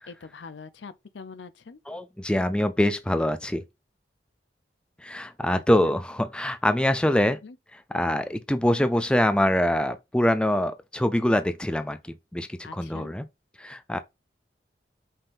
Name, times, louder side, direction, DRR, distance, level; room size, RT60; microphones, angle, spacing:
voice 1, 0.1-1.8 5.5-5.9 7.2-7.6 12.6-13.1, left 5 dB, 85° left, 0.6 m, -43 dB
voice 2, 1.9-3.6 5.0-7.4 7.7-13.3 13.6-14.0, left 1 dB, 5° left, 0.3 m, -24 dB
5.5 x 3.5 x 2.6 m
head